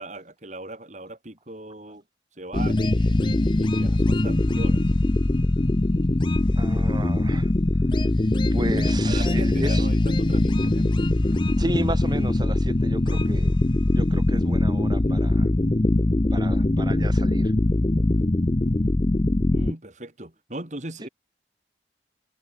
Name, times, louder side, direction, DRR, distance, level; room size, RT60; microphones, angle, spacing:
voice 1, 0.0-2.0 2.4-4.8 9.0-11.0 19.5-21.1, right 1 dB, 45° right, 3.0 m, -39 dB
sound 1, 2.5-19.7, left 1 dB, 25° left, 0.6 m, -22 dB
voice 2, 6.6-7.5 7.9-8.1 8.5-9.9 11.6-13.5 13.9-15.5 16.3-17.5, right 1 dB, 25° right, 6.7 m, -33 dB
head